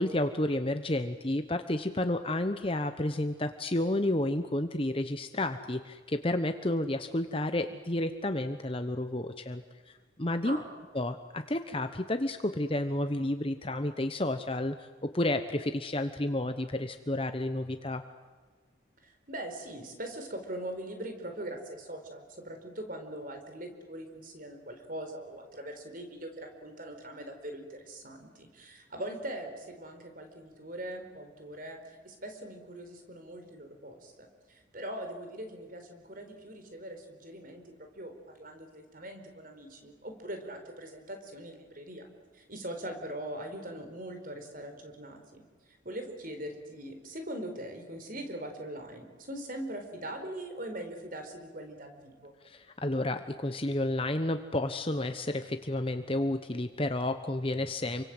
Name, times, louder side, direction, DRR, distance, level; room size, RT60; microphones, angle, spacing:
voice 1, 0.0-9.9 10.2-10.6 10.9-18.0 52.4-58.0, left 1 dB, 30° left, 8 dB, 1.0 m, -31 dB
voice 2, 19.0-31.8 32.0-42.0 42.3-45.4 45.8-52.3, right 1 dB, 45° right, 6 dB, 4.6 m, -41 dB
29.0 x 25.0 x 7.9 m, 1.5 s
head